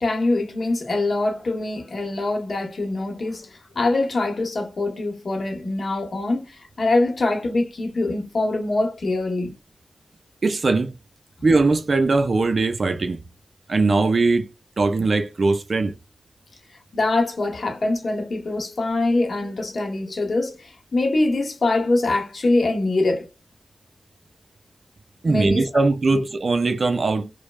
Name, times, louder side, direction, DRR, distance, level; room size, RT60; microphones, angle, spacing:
voice 1, 0.0-9.5 16.9-23.3 25.3-25.8 26.1-26.2, left 2 dB, 65° left, 0.9 m, -24 dB
voice 2, 10.4-10.9 11.4-13.2 13.7-14.5 14.8-16.0 25.2-27.3, right 3 dB, 60° right, 0.4 m, -20 dB
3.0 x 2.0 x 2.2 m
cardioid pair, 50°, 0 cm